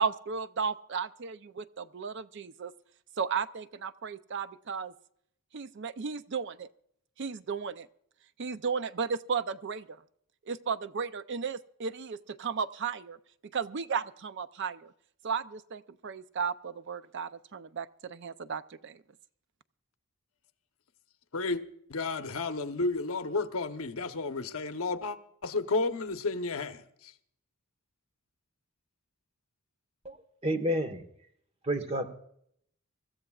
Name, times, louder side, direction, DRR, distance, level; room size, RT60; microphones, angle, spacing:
voice 1, 0.0-2.7 3.2-4.9 5.5-6.7 7.2-7.9 8.4-10.0 10.5-13.2 13.5-14.9 15.2-19.0, right 6 dB, 55° right, 0.4 m, -34 dB
voice 2, 21.9-25.2 25.4-27.1, left 3 dB, 70° left, 0.9 m, -32 dB
voice 3, 30.4-31.0 31.7-32.1, equal, 25° right, 1.2 m, -29 dB
25.0 x 14.0 x 2.4 m
head